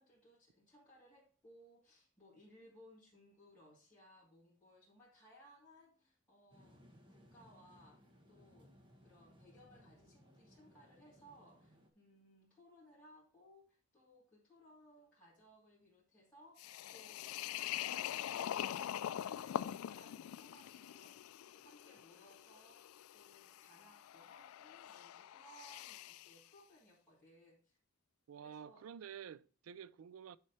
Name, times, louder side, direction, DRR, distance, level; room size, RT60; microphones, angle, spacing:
voice 1, 0.0-8.7 9.0-27.8 28.4-28.9, equal, 5° left, 2.7 m, -63 dB
sound 1, 6.5-11.9, equal, 25° right, 1.2 m, -64 dB
sound 2, 16.6-26.4, left 11 dB, 85° left, 0.3 m, -44 dB
voice 2, 28.3-30.4, right 8 dB, 80° right, 0.4 m, -50 dB
9.6 x 4.4 x 4.2 m
head